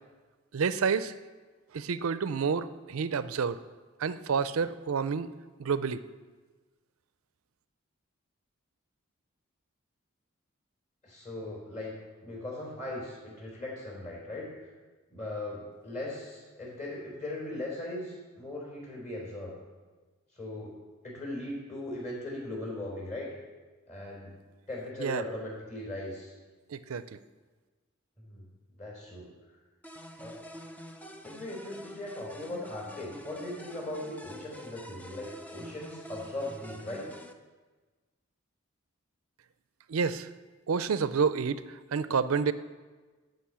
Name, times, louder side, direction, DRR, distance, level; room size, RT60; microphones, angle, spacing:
voice 1, 0.5-1.1 1.7-3.6 4.0-5.3 5.6-6.0 25.0-25.2 26.7-27.2 39.9-40.3 40.7-42.5, right 5 dB, 80° right, 14 dB, 0.5 m, -29 dB
voice 2, 11.0-11.9 12.2-14.5 15.1-19.6 20.3-20.8 21.0-23.3 23.9-24.3 24.7-26.3 28.2-28.4 28.8-29.3 30.2-30.5 31.2-37.1, left 1 dB, 35° left, -2 dB, 3.8 m, -39 dB
sound 1, 29.8-37.3, equal, 5° left, 0.5 m, -47 dB
11.5 x 5.3 x 8.5 m, 1.3 s
head